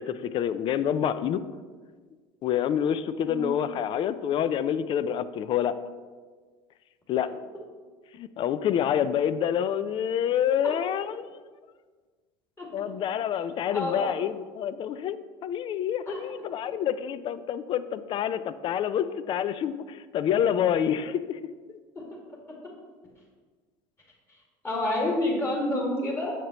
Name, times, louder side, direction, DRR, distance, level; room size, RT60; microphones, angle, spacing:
voice 1, 0.0-1.4 2.4-5.8 7.1-7.3 8.1-11.3 12.7-21.4, left 9 dB, 40° left, 14 dB, 0.4 m, -27 dB
voice 2, 13.7-14.1 16.1-16.2 24.6-26.3, left 1 dB, 20° left, -2 dB, 2.0 m, -28 dB
7.2 x 6.7 x 2.9 m, 1.5 s
supercardioid pair, 110°, 13 cm